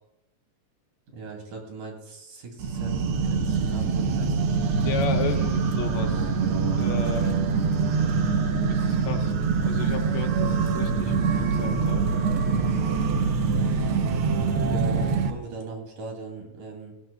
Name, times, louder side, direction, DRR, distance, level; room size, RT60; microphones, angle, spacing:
voice 1, 1.1-3.0 3.2-4.6 14.6-16.9, right 3 dB, 90° right, 1 dB, 4.2 m, -39 dB
sound 1, 2.6-15.3, right 5 dB, 70° right, 1.3 m, -24 dB
voice 2, 4.7-6.3 6.8-7.4 8.7-9.3 9.6-12.1 14.4-14.8, left 7 dB, 70° left, 4 dB, 2.3 m, -34 dB
18.5 x 15.5 x 2.3 m, 0.91 s
omnidirectional pair, 3.5 m